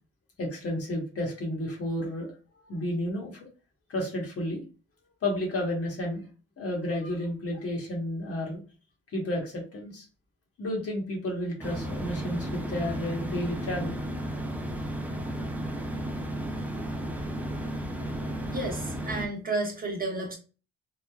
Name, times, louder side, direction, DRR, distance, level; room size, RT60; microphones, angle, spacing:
voice 1, 0.4-2.3 2.6-3.5 3.9-4.6 5.2-6.2 6.6-8.6 9.1-10.1 10.6-14.0, left 1 dB, 50° left, 0 dB, 1.1 m, -31 dB
sound 1, 11.6-19.3, right 1 dB, 5° right, 0.4 m, -33 dB
voice 2, 18.5-20.3, right 2 dB, 30° right, 0 dB, 0.9 m, -31 dB
3.2 x 2.2 x 2.3 m, 0.34 s
cardioid pair, 90°, 30 cm